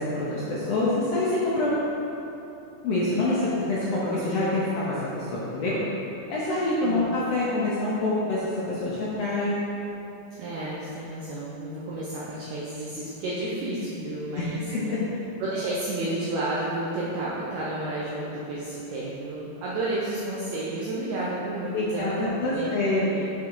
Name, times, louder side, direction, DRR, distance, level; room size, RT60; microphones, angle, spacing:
voice 1, 0.0-1.7 2.8-5.8 6.3-9.6 14.4-15.0 21.7-23.1, left 2 dB, 70° left, -7 dB, 1.6 m, -26 dB
voice 2, 10.4-14.6 15.4-23.3, right 2 dB, 75° right, -7 dB, 1.8 m, -31 dB
7.1 x 3.7 x 4.6 m, 3.0 s
omnidirectional pair, 3.6 m